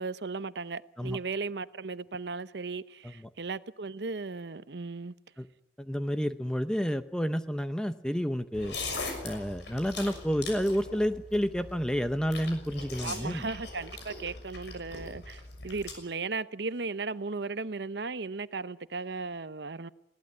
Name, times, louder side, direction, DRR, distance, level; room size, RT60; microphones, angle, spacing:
voice 1, 0.0-5.1 13.0-19.9, right 4 dB, 65° right, 0.8 m, -36 dB
voice 2, 5.8-8.8 9.2-13.5, equal, 5° left, 0.8 m, -30 dB
sound 1, 8.5-15.9, left 3 dB, 70° left, 6.4 m, -41 dB
20.5 x 17.5 x 9.4 m
head